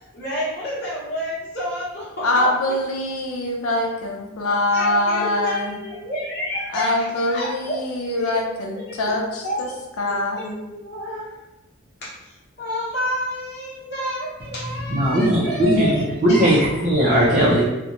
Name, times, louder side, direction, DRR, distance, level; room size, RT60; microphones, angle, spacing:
voice 1, 0.1-2.5 4.7-7.8 8.1-8.4 8.7-9.2 9.4-9.7 10.1-11.3 12.0-16.0 16.3-16.5, equal, 50° left, -7 dB, 0.9 m, -29 dB
voice 2, 2.2-5.8 6.7-9.7 10.0-10.6, left 1 dB, 85° left, 0 dB, 0.5 m, -23 dB
voice 3, 14.4-17.6, equal, 35° right, -7 dB, 0.4 m, -19 dB
2.8 x 2.1 x 2.4 m, 1.0 s
head